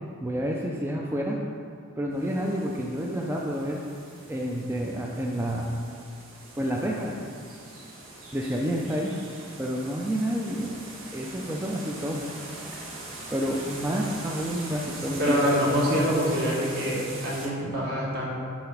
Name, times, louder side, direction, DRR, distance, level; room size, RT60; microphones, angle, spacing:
voice 1, 0.2-1.4 2.0-3.8 4.3-5.7 6.6-7.2 8.3-9.1 9.6-10.7 11.1-12.2 13.3-15.4, equal, 10° right, -2 dB, 0.4 m, -29 dB
sound 1, 2.1-17.5, right 2 dB, 75° right, 1.3 m, -42 dB
voice 2, 15.2-18.3, equal, 55° right, -6 dB, 1.9 m, -25 dB
7.1 x 3.9 x 5.9 m, 2.2 s
head